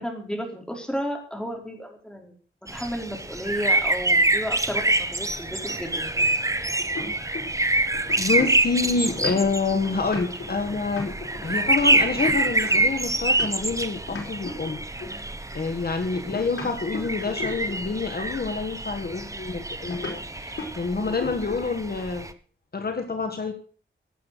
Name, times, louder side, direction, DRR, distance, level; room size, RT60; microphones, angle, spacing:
voice 1, 0.0-2.3 2.7-6.1, equal, 5° left, 2 dB, 4.4 m, -32 dB
sound 1, 2.7-22.3, right 2 dB, 15° right, 1.1 m, -26 dB
sound 2, 5.7-7.7 7.9-13.8 14.1-15.2 16.1-17.9 19.9-20.2 20.6-20.8 21.1-21.7, left 3 dB, 75° left, 5.0 m, -37 dB
voice 2, 8.2-11.1 11.4-15.3 15.5-22.3 22.7-23.5, left 4 dB, 50° left, 6 dB, 1.6 m, -27 dB
16.5 x 8.5 x 6.7 m, 0.42 s
wide cardioid pair, 115°, 20 cm